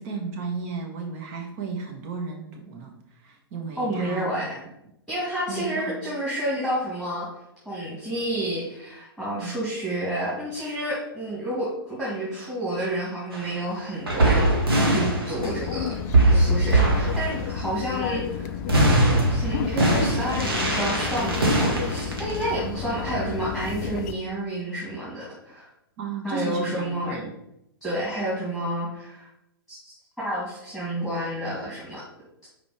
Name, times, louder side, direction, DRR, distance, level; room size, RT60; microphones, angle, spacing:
voice 1, 0.0-4.4 5.5-5.9 9.3-9.5 22.6-22.8 26.0-27.3, right 4 dB, 40° right, 1 dB, 1.7 m, -34 dB
voice 2, 3.8-4.6 5.1-7.3 7.6-14.5 14.9-16.0 16.3-18.5 19.3-25.7 26.2-27.2 27.8-29.3 29.7-32.0, right 1 dB, 5° right, -9 dB, 2.2 m, -30 dB
sound 1, 13.3-13.5 14.1-15.8 16.1-18.2 18.7-23.9, right 1 dB, 70° right, 1.9 m, -22 dB
sound 2, 15.4-24.1, left 8 dB, 40° left, 0.4 m, -32 dB
5.0 x 4.7 x 4.9 m, 0.81 s
figure-of-eight pair, 115°, 13 cm